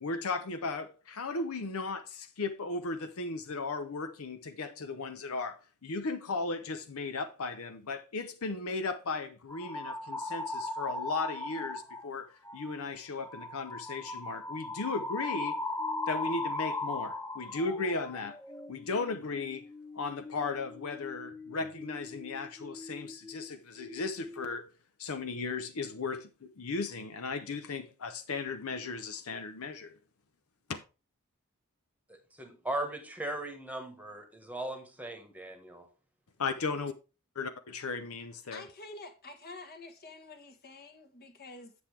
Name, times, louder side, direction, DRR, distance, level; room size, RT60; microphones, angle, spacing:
voice 1, 0.0-15.6 16.1-18.4 18.7-19.7 19.9-24.7 25.0-29.9 30.7-30.8 36.4-36.9 37.4-38.6, left 3 dB, 70° left, 0.7 m, -36 dB
sound 1, 9.5-12.1 12.5-12.8 13.2-23.5 23.8-24.5, left 2 dB, 10° left, 0.5 m, -39 dB
voice 2, 32.1-35.9, right 1 dB, 5° right, 1.3 m, -38 dB
voice 3, 38.5-41.7, left 3 dB, 45° left, 1.3 m, -48 dB
8.0 x 7.3 x 3.3 m
head